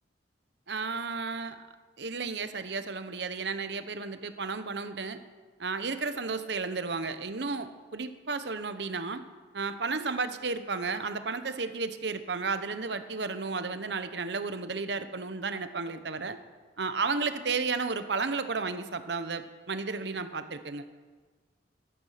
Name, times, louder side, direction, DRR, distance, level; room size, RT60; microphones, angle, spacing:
voice 1, 0.7-1.6 2.0-5.2 5.6-9.2 9.5-16.4 16.8-20.8, right 4 dB, 65° right, 10 dB, 1.0 m, -33 dB
14.0 x 12.5 x 5.8 m, 1.4 s
head